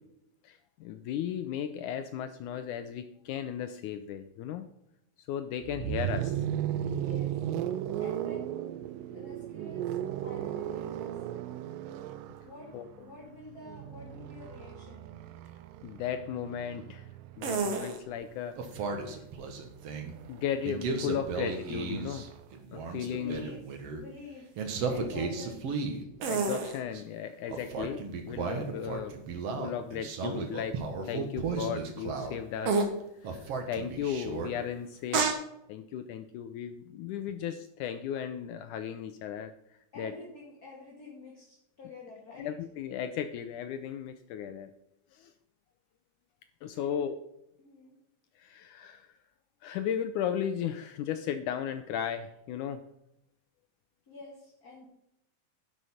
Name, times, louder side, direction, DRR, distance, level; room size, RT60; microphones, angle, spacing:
voice 1, 0.4-4.7 5.2-6.5 12.7-12.9 15.8-17.1 17.4-19.1 20.3-22.3 22.7-23.4 26.2-29.1 29.6-30.8 31.0-32.9 33.2-35.3 35.7-39.5 40.0-40.1 42.3-44.7 45.1-45.3 46.6-47.2 48.4-49.2 49.6-52.8, left 9 dB, 75° left, 9 dB, 1.9 m, -35 dB
sound 1, 5.6-17.6 18.8-22.4, right 11 dB, 85° right, 2.3 m, -36 dB
voice 2, 8.0-8.5 9.1-9.8 10.2-11.2 12.4-12.7 13.0-15.1 23.1-23.6 24.0-25.7 26.1-26.2 39.9-42.5 46.7-47.0 47.6-48.0 54.1-54.9, left 3 dB, 30° left, -4 dB, 2.5 m, -47 dB
sound 2, 17.4-18.0 18.6-20.2 20.6-22.3 22.5-24.0 24.6-27.0 27.5-32.4 32.7-32.9 33.2-34.5 35.1-35.3, right 4 dB, 55° right, 2.1 m, -33 dB
11.0 x 6.6 x 5.7 m, 0.81 s
omnidirectional pair, 4.0 m